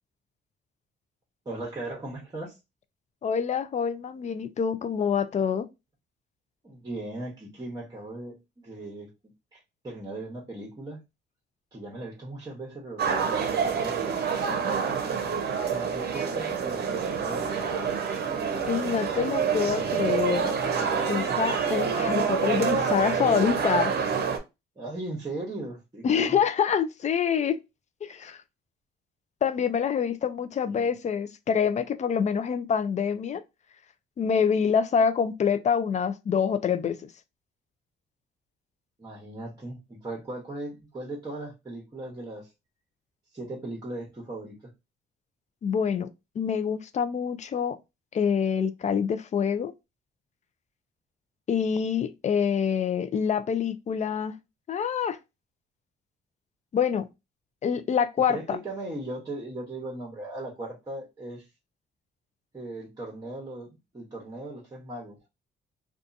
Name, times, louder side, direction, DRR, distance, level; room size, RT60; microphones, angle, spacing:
voice 1, 1.4-2.6 6.6-9.1 9.5-11.0 11.7-15.0 15.7-17.9 24.8-26.4 30.6-30.9 39.0-42.5 43.3-44.6 58.3-61.5 62.5-65.2, right 2 dB, 20° right, 0.9 m, -38 dB
voice 2, 3.2-5.7 18.7-20.5 21.1-23.9 26.0-27.6 28.0-28.4 29.4-33.4 34.2-37.1 45.6-46.1 46.4-47.8 48.1-49.7 51.5-54.3 54.7-55.2 56.7-57.1 57.6-58.6, left 7 dB, 35° left, 0.4 m, -26 dB
sound 1, 13.0-24.4, right 6 dB, 55° right, 0.7 m, -27 dB
2.6 x 2.3 x 2.5 m
cardioid pair, 90°, 20 cm